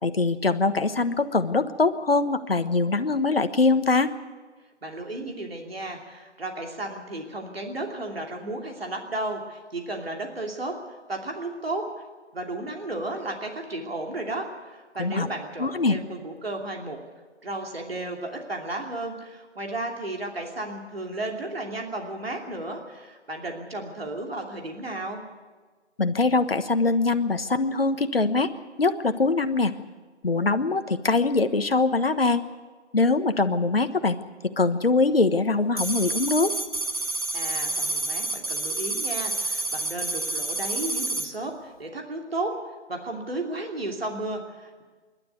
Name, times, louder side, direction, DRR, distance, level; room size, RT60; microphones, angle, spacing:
voice 1, 0.0-4.1 15.0-15.3 15.6-16.0 26.0-28.5 28.8-29.7 30.2-32.4 32.9-34.2 34.4-36.5, left 3 dB, 55° left, 10 dB, 1.2 m, -23 dB
voice 2, 4.8-10.8 11.1-11.9 12.3-17.0 17.4-25.2 37.3-42.5 42.9-44.8, right 2 dB, 55° right, 1 dB, 2.9 m, -33 dB
sound 1, 35.8-41.3, right 2 dB, 30° right, 1.1 m, -29 dB
25.5 x 12.0 x 9.5 m, 1.4 s
figure-of-eight pair, 170°, 35 cm